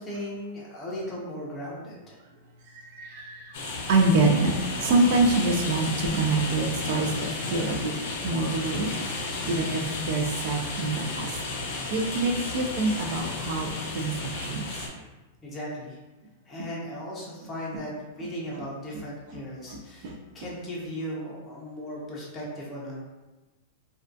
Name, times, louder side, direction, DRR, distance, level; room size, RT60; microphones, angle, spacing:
voice 1, 0.0-2.2 15.4-16.0 16.5-23.0, equal, 15° left, -6 dB, 0.5 m, -37 dB
voice 2, 2.7-7.9 8.2-8.9 9.2-11.4 11.9-14.1 14.5-14.7 19.7-20.2, right 2 dB, 50° right, 2 dB, 0.3 m, -26 dB
sound 1, 3.5-14.9, left 3 dB, 60° left, 0.5 m, -33 dB
2.3 x 2.2 x 2.5 m, 1.1 s
supercardioid pair, 160°, 0 cm